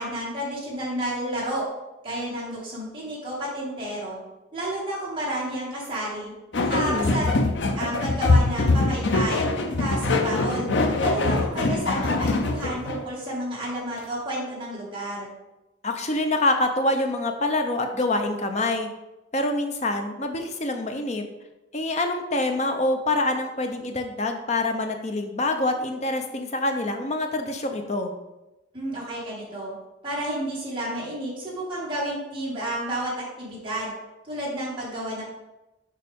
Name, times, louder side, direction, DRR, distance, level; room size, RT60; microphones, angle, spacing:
voice 1, 0.0-1.7 2.0-4.2 4.5-7.3 7.7-15.3 28.7-29.7 30.0-33.9 34.2-35.2, right 1 dB, 25° right, -6 dB, 2.2 m, -31 dB
sound 1, 6.5-13.1, left 2 dB, 75° left, 0.6 m, -23 dB
voice 2, 6.8-7.2 15.8-18.9 19.3-21.2 21.7-28.1, left 2 dB, 40° left, 5 dB, 0.7 m, -26 dB
6.8 x 4.9 x 3.6 m, 1.0 s
head